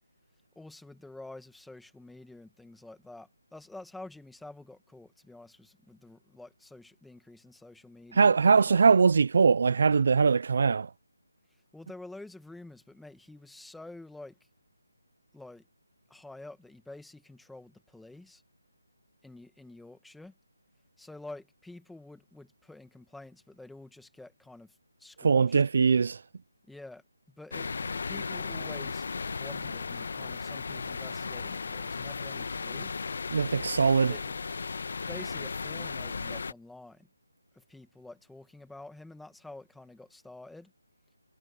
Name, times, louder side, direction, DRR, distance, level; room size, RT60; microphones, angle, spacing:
voice 1, 0.6-9.0 11.7-14.4 15.3-15.7 16.1-18.4 19.2-20.3 21.0-25.6 26.7-33.1 34.1-34.4 35.1-37.1 37.5-40.7, left 2 dB, ahead, 2.0 m, -48 dB
voice 2, 8.1-10.9 25.2-26.2 33.3-34.1, right 5 dB, 45° right, 0.4 m, -22 dB
sound 1, 27.5-36.5, left 4 dB, 50° left, 1.3 m, -36 dB
figure-of-eight pair, 170°, 0 cm